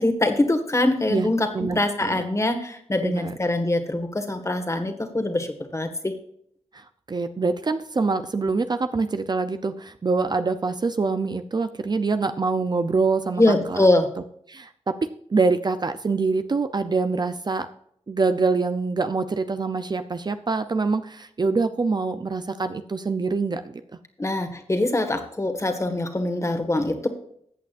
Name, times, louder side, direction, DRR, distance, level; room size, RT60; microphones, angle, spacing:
voice 1, 0.0-6.1 13.4-14.1 24.2-27.1, left 2 dB, 25° left, 6 dB, 1.7 m, -23 dB
voice 2, 1.5-2.2 3.0-3.3 6.7-13.9 14.5-17.7 18.1-23.8, right 4 dB, 40° right, 9 dB, 0.6 m, -25 dB
14.5 x 8.4 x 2.6 m, 0.67 s
wide cardioid pair, 90°, 12 cm